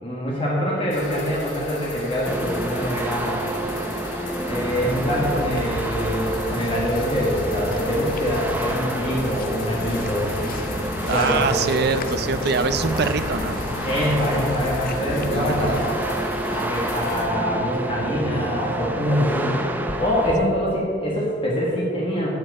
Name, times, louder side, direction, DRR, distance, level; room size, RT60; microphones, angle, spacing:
voice 1, 0.0-3.5 4.5-10.3 11.1-11.7 13.8-22.3, equal, 25° left, -5 dB, 1.5 m, -24 dB
sound 1, 0.9-17.3, left 2 dB, 70° left, 1.8 m, -37 dB
sound 2, 2.3-20.3, right 1 dB, 10° right, 0.6 m, -29 dB
sound 3, 4.9-16.0, left 2 dB, 45° left, 0.5 m, -33 dB
voice 2, 11.1-13.6 15.3-15.8, right 4 dB, 55° right, 11 dB, 0.5 m, -24 dB
7.6 x 6.7 x 8.0 m, 2.5 s
head